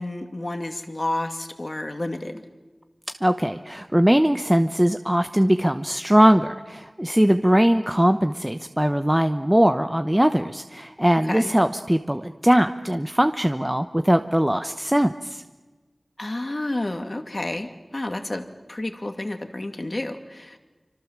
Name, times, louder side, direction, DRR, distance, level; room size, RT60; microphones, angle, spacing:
voice 1, 0.0-2.4 11.3-11.5 16.2-20.6, left 1 dB, 40° left, 7 dB, 2.4 m, -30 dB
voice 2, 3.2-15.4, equal, 10° right, 9 dB, 0.9 m, -20 dB
27.5 x 25.5 x 7.5 m, 1.3 s
wide cardioid pair, 60°, 0 cm